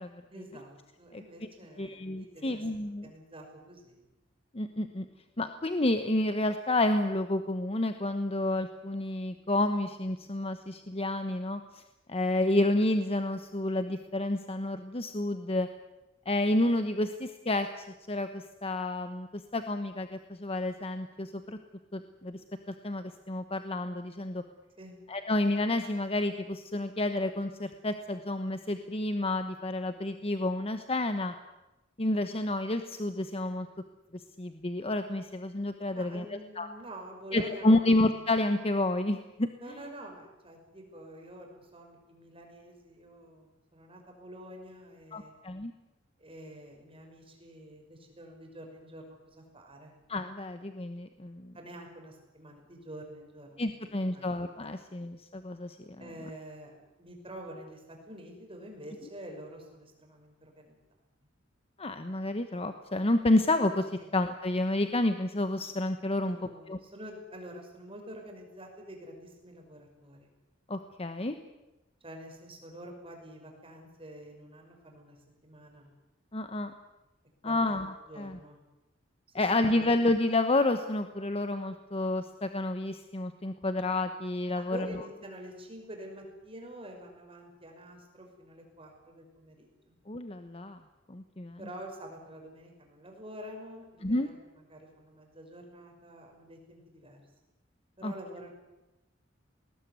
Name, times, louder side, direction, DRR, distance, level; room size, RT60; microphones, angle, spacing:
voice 1, 0.3-4.0 24.8-25.0 35.9-37.9 39.6-45.3 46.2-49.9 51.5-54.2 56.0-56.7 57.0-60.8 64.0-64.1 66.2-70.3 72.0-75.2 75.4-75.9 77.4-77.8 78.1-78.6 79.3-79.5 79.8-79.9 84.5-89.9 91.6-97.2 98.0-98.5, right 1 dB, 30° right, 2 dB, 5.9 m, -47 dB
voice 2, 1.8-3.1 4.5-5.1 5.4-11.8 12.1-15.7 16.2-21.6 21.9-22.4 22.7-24.4 25.1-31.3 32.0-33.7 34.1-36.7 37.3-39.5 45.1-45.7 50.1-51.5 53.6-55.8 61.8-66.4 66.7-66.8 70.7-71.4 76.3-76.7 77.4-78.4 79.3-84.9 90.1-90.8 91.1-91.6 94.0-94.3 98.0-98.1, left 2 dB, 30° left, 8 dB, 1.1 m, -30 dB
20.0 x 19.5 x 9.6 m, 1.0 s
head